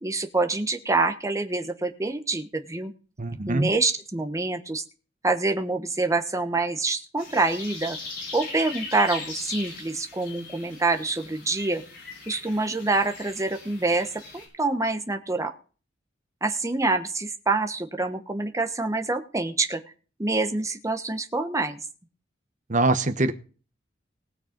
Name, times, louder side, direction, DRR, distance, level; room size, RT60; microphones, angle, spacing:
voice 1, 0.0-2.9 3.5-4.8 5.2-8.0 8.3-11.8 12.3-15.5 16.4-19.8 20.2-21.8, right 3 dB, 15° right, 6 dB, 1.1 m, -26 dB
voice 2, 3.2-3.7 22.7-23.3, right 2 dB, 45° right, 10 dB, 1.0 m, -23 dB
sound 1, 7.2-14.5, left 4 dB, 55° left, 5.8 m, -39 dB
19.0 x 6.5 x 5.2 m, 0.38 s
head